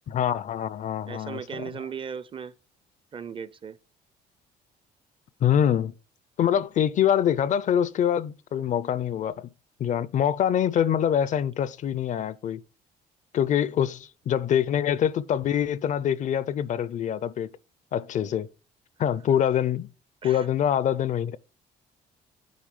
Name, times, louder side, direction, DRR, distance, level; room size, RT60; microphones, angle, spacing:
voice 1, 0.1-1.7 5.4-5.9 6.4-9.5 9.8-12.6 13.3-17.5 17.9-18.5 19.0-19.9 20.2-21.4, left 9 dB, 45° left, 0.5 m, -25 dB
voice 2, 1.1-2.5 3.1-3.8 20.2-20.5, right 7 dB, 30° right, 0.5 m, -37 dB
9.5 x 3.8 x 4.9 m
cardioid pair, 110°, 17 cm